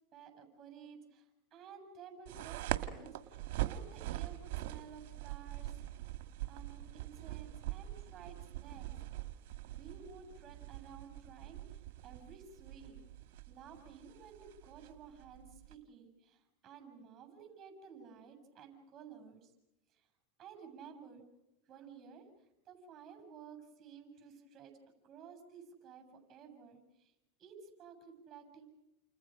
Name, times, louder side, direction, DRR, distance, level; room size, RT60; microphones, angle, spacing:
voice 1, 0.1-5.7 6.4-8.9 9.8-13.0 13.5-19.5 19.9-20.1 20.4-21.2 21.7-22.2 22.7-24.8 25.0-27.1 27.4-28.7, right 6 dB, 35° right, 7 dB, 7.3 m, -54 dB
sound 1, 2.3-15.7, right 15 dB, 65° right, 1.7 m, -43 dB
29.5 x 28.5 x 5.3 m, 0.94 s
hypercardioid pair, 100°, 0 cm